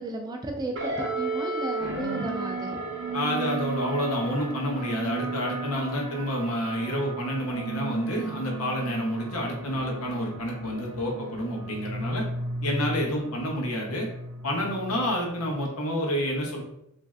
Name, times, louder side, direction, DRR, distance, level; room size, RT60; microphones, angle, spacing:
voice 1, 0.0-2.7, right 2 dB, 20° right, 2 dB, 0.3 m, -34 dB
sound 1, 0.7-15.5, right 3 dB, 55° right, 0.6 m, -34 dB
voice 2, 3.1-12.3 12.6-14.1 14.4-16.6, equal, 80° left, 0 dB, 0.8 m, -29 dB
3.1 x 2.5 x 2.3 m, 0.81 s
head